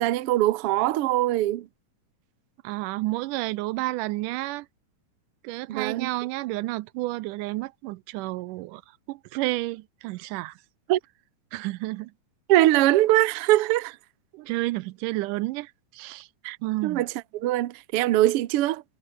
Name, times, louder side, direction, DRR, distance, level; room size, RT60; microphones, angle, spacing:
voice 1, 0.0-1.7 5.7-6.1 10.9-11.0 12.5-13.9 16.4-16.6 16.8-17.1 17.3-18.8, right 15 dB, 65° right, 1.5 m, -22 dB
voice 2, 2.6-4.7 5.4-8.8 9.1-10.6 11.5-12.1 14.3-16.3 16.6-17.0, right 19 dB, 90° right, 2.2 m, -31 dB
omnidirectional pair, 3.6 m